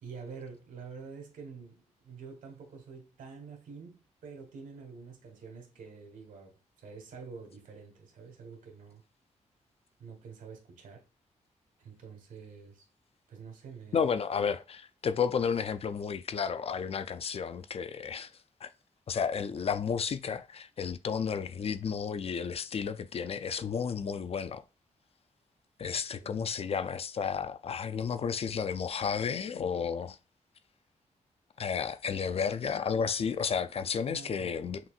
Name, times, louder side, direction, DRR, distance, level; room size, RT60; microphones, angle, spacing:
voice 1, 0.0-9.0 10.0-11.0 11.8-12.9 13.3-14.0 26.2-26.5 34.1-34.6, right 5 dB, 90° right, 1.3 m, -47 dB
voice 2, 13.9-18.3 18.6-18.7 19.1-24.6 25.8-30.2 31.6-34.8, left 6 dB, 50° left, 0.4 m, -32 dB
5.9 x 2.6 x 2.4 m
cardioid pair, 90°, 13 cm